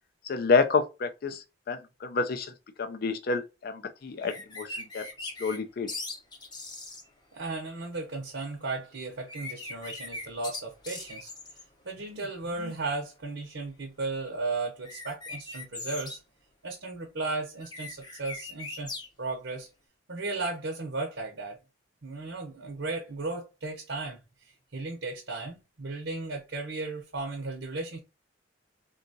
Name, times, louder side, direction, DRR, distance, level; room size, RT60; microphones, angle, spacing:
voice 1, 0.2-2.5 2.8-5.9, left 4 dB, 50° left, 0.4 m, -29 dB
sound 1, 4.2-5.6 5.9-7.0 9.3-11.6 14.8-16.1 17.6-19.1, left 2 dB, 20° left, 0.7 m, -40 dB
voice 2, 7.3-11.3 11.8-16.2 16.6-19.7 20.1-21.6 22.0-28.0, right 3 dB, 65° right, 0.7 m, -35 dB
3.8 x 2.3 x 2.6 m
head